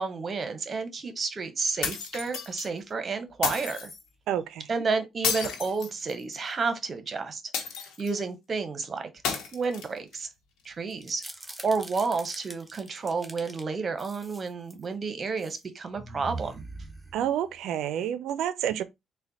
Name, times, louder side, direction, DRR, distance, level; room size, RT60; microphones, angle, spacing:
voice 1, 0.0-3.9 4.7-7.4 8.0-9.1 9.5-10.3 10.6-11.2 11.6-16.6, right 4 dB, 40° right, 0.9 m, -31 dB
sound 1, 1.8-2.7 3.4-4.0 5.2-6.5 7.5-8.2 9.2-10.2, left 6 dB, 90° left, 0.9 m, -32 dB
voice 2, 4.3-4.8 17.1-18.8, right 10 dB, 85° right, 0.4 m, -29 dB
sound 2, 10.9-13.6 14.0-14.8 15.3-15.6 15.9-17.6, right 2 dB, 10° right, 0.9 m, -42 dB
4.1 x 2.2 x 4.0 m
cardioid pair, 90°, 0 cm